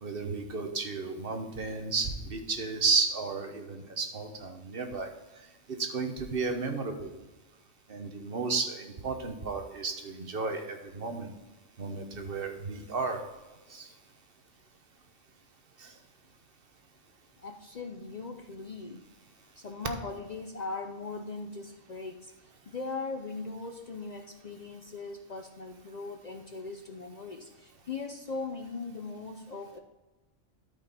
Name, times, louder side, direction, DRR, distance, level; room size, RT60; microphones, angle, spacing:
voice 1, 0.0-5.1 5.7-7.1 7.9-11.3 11.8-13.2 13.7-13.9 15.8-15.9, right 4 dB, 55° right, 5 dB, 1.2 m, -33 dB
voice 2, 17.4-19.0 19.6-22.3 22.7-29.8, left 3 dB, 45° left, 5 dB, 0.6 m, -39 dB
12.5 x 5.2 x 4.1 m, 1.1 s
omnidirectional pair, 1.2 m